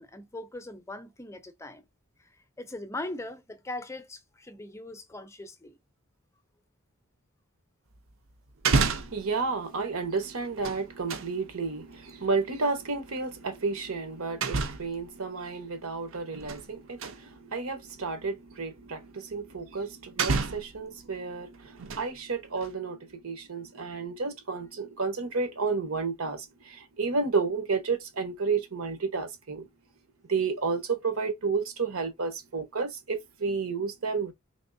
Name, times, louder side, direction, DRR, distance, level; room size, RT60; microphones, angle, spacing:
voice 1, 0.0-1.8 2.6-5.8, left 2 dB, 15° left, 0.6 m, -40 dB
sound 1, 8.0-8.1 8.5-9.3 10.4-11.3 12.9-13.1 14.4-15.0 16.1-16.7 17.0-17.2 18.1-18.2 19.6-19.7 20.2-20.8 21.6-22.2 22.6-22.7, right 4 dB, 60° right, 0.6 m, -29 dB
voice 2, 8.7-29.7 30.3-34.3, right 4 dB, 80° right, 1.1 m, -31 dB
3.5 x 3.0 x 2.6 m
head